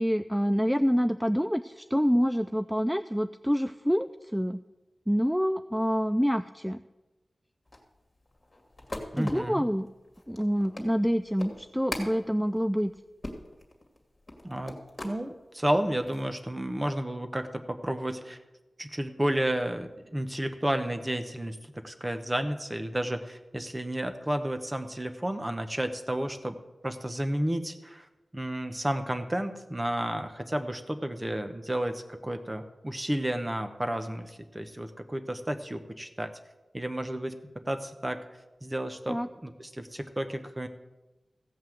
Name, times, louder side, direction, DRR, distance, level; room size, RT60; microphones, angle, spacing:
voice 1, 0.0-4.6 5.1-6.8 9.2-9.9 10.3-12.9 39.1-39.3, equal, ahead, 11 dB, 0.3 m, -27 dB
sound 1, 7.7-15.2 15.7-16.3, left 1 dB, 30° left, 2.2 m, -41 dB
voice 2, 9.1-9.6 14.4-18.4 18.8-26.6 26.8-28.1 28.3-36.3 36.7-38.2 38.6-40.7, right 1 dB, 20° right, 8 dB, 1.0 m, -32 dB
15.5 x 5.5 x 7.8 m, 1.1 s
wide cardioid pair, 90°, 0 cm